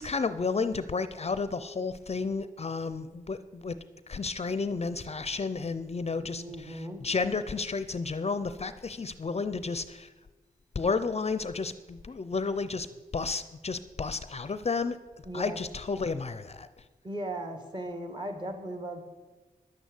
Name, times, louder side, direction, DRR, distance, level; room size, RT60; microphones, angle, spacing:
voice 1, 0.0-3.8 4.1-10.1 10.7-12.9 13.1-15.0 15.3-16.7, left 4 dB, 45° left, 13 dB, 0.6 m, -32 dB
voice 2, 6.2-7.0 15.3-15.6 17.0-19.0, right 1 dB, 30° right, 5 dB, 2.2 m, -37 dB
11.0 x 9.3 x 8.3 m, 1.3 s
wide cardioid pair, 125°, 15 cm